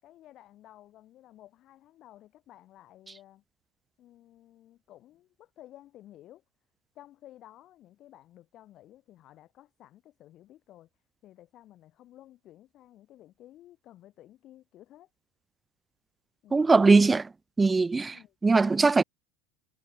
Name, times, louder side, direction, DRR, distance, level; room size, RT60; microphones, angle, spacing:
voice 1, 0.0-3.4 4.0-6.4 6.9-10.9 11.2-15.1 16.4-16.8 18.1-18.4, left 13 dB, 50° left, 7.2 m, -54 dB
voice 2, 16.5-17.3 17.6-18.2 18.4-19.0, right 3 dB, 15° right, 0.4 m, -20 dB
hypercardioid pair, 80°, 0 cm